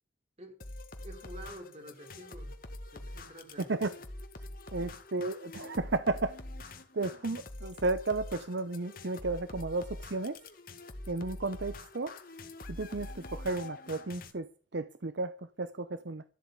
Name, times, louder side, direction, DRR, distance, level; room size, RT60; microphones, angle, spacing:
sound 1, 0.6-14.3, left 2 dB, 50° left, 1.7 m, -45 dB
voice 1, 1.0-2.6 2.9-3.7 4.8-4.9, right 1 dB, 35° right, 3.3 m, -49 dB
voice 2, 4.7-10.4 11.1-12.2 12.7-16.2, right 3 dB, 70° right, 0.8 m, -34 dB
13.5 x 8.3 x 8.2 m
head